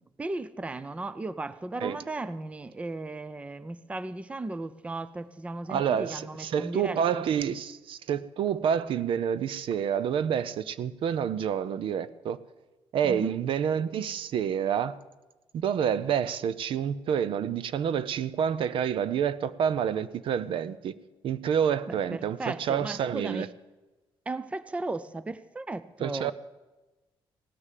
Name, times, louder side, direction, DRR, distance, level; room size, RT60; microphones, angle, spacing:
voice 1, 0.0-7.3 13.0-13.4 21.9-23.5 24.3-26.3, right 2 dB, 15° right, 0.5 m, -36 dB
voice 2, 5.7-12.4 12.9-15.0 15.5-20.9 21.2-23.5 26.0-26.3, right 8 dB, 65° right, 0.6 m, -28 dB
17.0 x 9.8 x 7.5 m
cardioid pair, 140°, 10 cm